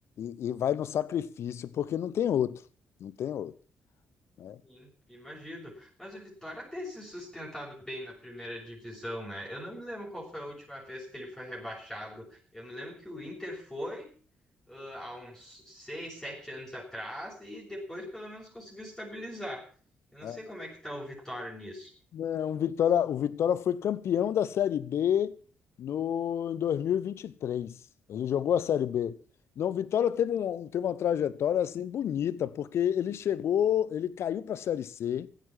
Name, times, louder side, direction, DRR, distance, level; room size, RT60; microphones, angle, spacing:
voice 1, 0.2-2.6 3.0-3.5 4.4-4.6 20.2-20.4 22.1-25.4 25.8-27.8 28.1-29.2 29.6-35.3, left 9 dB, 55° left, 0.9 m, -29 dB
voice 2, 4.6-14.1 14.7-19.6 20.1-21.9, equal, 10° left, 6.9 m, -41 dB
15.5 x 9.3 x 7.3 m
figure-of-eight pair, 40°, 5 cm